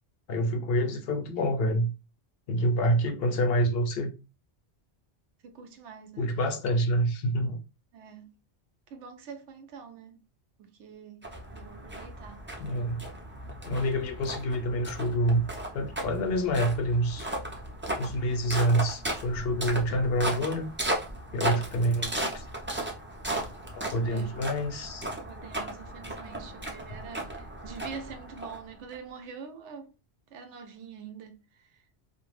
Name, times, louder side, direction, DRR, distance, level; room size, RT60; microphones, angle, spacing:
voice 1, 0.3-1.9 2.5-4.1 6.2-7.6 12.6-13.0 13.6-15.4 15.7-17.3 18.0-20.7 21.3-22.5 23.7-25.1, equal, 65° left, 0.7 m, -27 dB
voice 2, 5.4-6.3 7.9-8.3 8.9-10.2 10.6-12.4 21.4-21.7 24.0-24.4 25.1-29.9 30.3-31.8, right 6 dB, 85° right, 0.9 m, -45 dB
sound 1, 11.2-28.9, right 1 dB, 20° right, 0.3 m, -36 dB
2.5 x 2.1 x 3.1 m
omnidirectional pair, 1.2 m